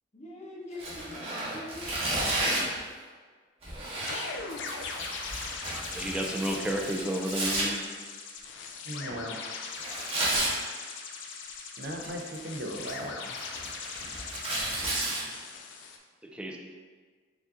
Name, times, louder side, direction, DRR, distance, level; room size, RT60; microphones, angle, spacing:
voice 1, 0.1-2.0 10.0-10.2, left 1 dB, 40° left, -3 dB, 0.9 m, -44 dB
Tearing, 0.7-2.8 3.6-7.6 9.8-10.5 11.8-12.3 12.7-15.2, right 1 dB, 35° right, 1.1 m, -32 dB
sound 1, 4.0-16.0, left 5 dB, 75° left, 0.5 m, -40 dB
voice 2, 5.6-7.8 16.3-16.6, right 1 dB, 5° right, 1 dB, 0.4 m, -32 dB
voice 3, 8.9-9.3 11.6-13.4, right 1 dB, 65° right, 1 dB, 0.6 m, -38 dB
4.9 x 2.7 x 3.6 m, 1.5 s
head